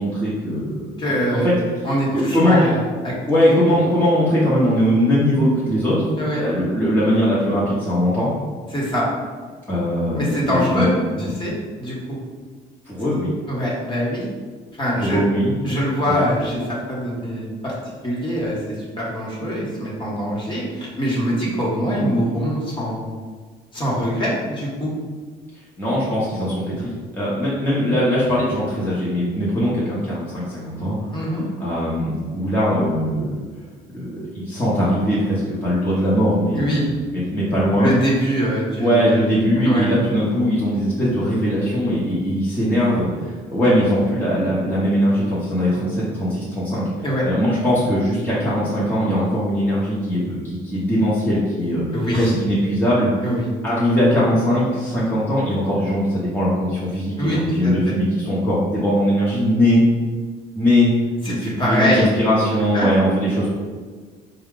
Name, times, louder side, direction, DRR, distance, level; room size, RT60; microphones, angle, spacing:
voice 1, 0.0-1.5 2.1-2.7 3.3-8.3 9.7-10.9 11.1-11.4 12.9-13.4 15.0-15.6 25.8-31.0 31.6-33.4 33.9-36.8 37.1-37.9 38.8-46.8 47.2-51.8 52.1-53.1 53.6-59.8 60.6-60.9 61.3-63.5, equal, 10° left, -9 dB, 1.0 m, -20 dB
voice 2, 1.0-1.5 1.8-2.8 3.0-3.1 3.4-3.5 6.2-6.4 8.7-9.1 10.1-10.9 11.2-11.5 11.8-12.2 13.5-14.2 14.8-15.2 15.6-16.6 16.9-17.7 18.0-23.1 23.7-24.9 31.0-31.4 36.5-36.8 37.8-39.2 39.6-39.9 47.0-47.2 51.9-52.3 53.2-53.5 57.2-57.7 61.2-62.1 62.7-62.9, equal, 30° left, -5 dB, 1.3 m, -23 dB
4.3 x 2.3 x 3.8 m, 1.5 s
cardioid pair, 110°, 17 cm